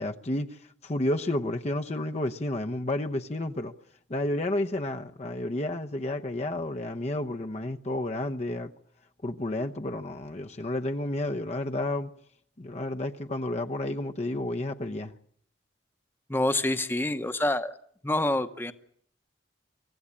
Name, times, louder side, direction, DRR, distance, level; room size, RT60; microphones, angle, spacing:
voice 1, 0.0-3.7 4.1-8.7 9.2-12.1 12.6-15.1, left 1 dB, 35° left, 0.8 m, -31 dB
voice 2, 16.3-17.7 18.0-18.7, left 1 dB, 10° left, 1.0 m, -27 dB
24.5 x 16.0 x 8.7 m
head